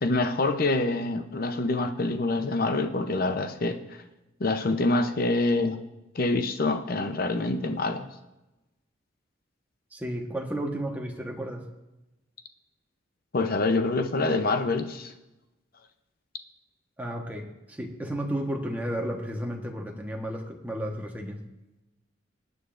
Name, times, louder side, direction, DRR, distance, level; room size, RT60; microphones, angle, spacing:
voice 1, 0.0-3.8 4.4-5.8 6.1-8.1 13.3-15.1, left 2 dB, 50° left, 8 dB, 0.7 m, -26 dB
voice 2, 9.9-11.7 17.0-21.4, right 1 dB, 10° right, 0 dB, 1.2 m, -33 dB
19.0 x 9.3 x 2.6 m, 1.0 s
head